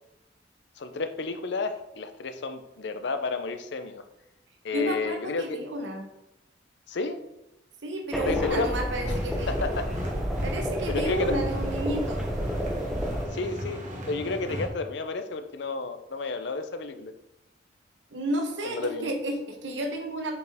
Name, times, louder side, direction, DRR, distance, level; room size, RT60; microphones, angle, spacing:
voice 1, 0.8-4.0 4.6-5.6 6.9-7.2 8.3-8.7 9.5-9.9 10.9-11.4 13.3-13.8 14.1-17.1 18.6-19.1, left 3 dB, 65° left, 8 dB, 0.6 m, -31 dB
voice 2, 4.7-6.0 7.8-9.6 10.4-12.2 18.1-20.4, right 1 dB, 80° right, 4 dB, 1.0 m, -31 dB
sound 1, 8.1-13.3, equal, ahead, 0.7 m, -30 dB
sound 2, 9.0-14.7, equal, 45° right, 1.3 m, -36 dB
6.7 x 4.4 x 3.5 m, 0.88 s
head